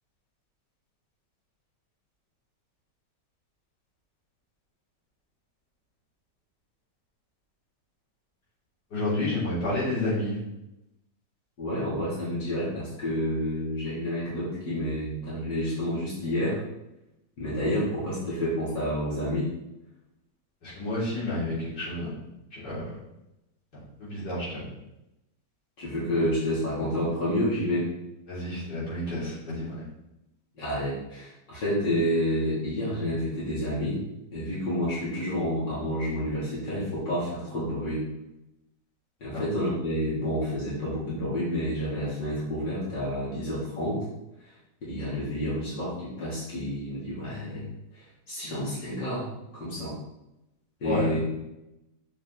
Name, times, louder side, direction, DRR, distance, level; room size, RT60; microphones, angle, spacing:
voice 1, 8.9-10.4 20.6-22.1 22.5-23.0 23.7-24.7 28.3-29.9 39.3-39.4 50.8-51.1, left 1 dB, 65° left, -9 dB, 3.9 m, -30 dB
voice 2, 11.6-16.6 17.4-19.5 25.8-27.9 30.6-34.0 34.3-38.0 39.2-44.1 44.4-44.5 44.8-47.7 47.9-49.3 49.5-50.0 50.8-51.4, equal, 85° left, -10 dB, 3.7 m, -29 dB
7.3 x 6.3 x 4.0 m, 0.90 s
omnidirectional pair, 1.9 m